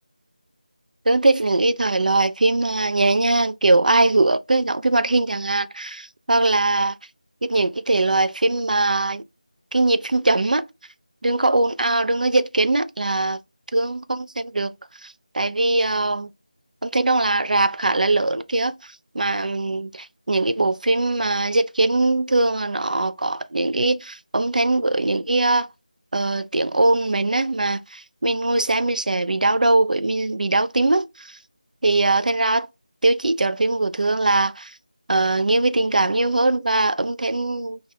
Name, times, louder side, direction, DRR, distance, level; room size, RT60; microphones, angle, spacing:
voice 1, 1.1-6.9 7.4-9.2 9.7-10.7 11.2-13.4 13.7-14.7 15.0-16.3 16.8-25.7 26.1-31.4 31.8-32.7 33.0-34.7 35.1-37.8, right 2 dB, 75° right, 0.4 m, -21 dB
2.5 x 2.2 x 3.2 m
figure-of-eight pair, 180°, 4 cm